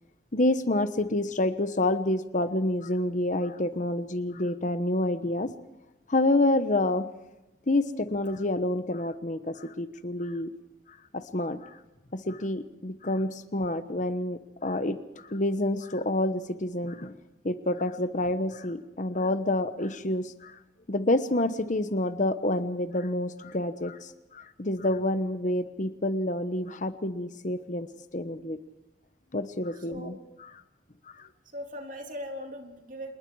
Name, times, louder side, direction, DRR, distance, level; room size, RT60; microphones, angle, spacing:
voice 1, 0.3-5.5 6.1-7.1 7.7-10.5 11.1-11.8 12.1-17.2 17.4-20.6 20.9-27.9 28.1-28.6 29.3-30.5 31.1-31.3, left 1 dB, 40° left, 11 dB, 1.1 m, -28 dB
voice 2, 29.9-30.3 31.5-33.1, equal, 45° right, 3 dB, 3.4 m, -39 dB
27.5 x 20.5 x 4.8 m, 0.98 s
head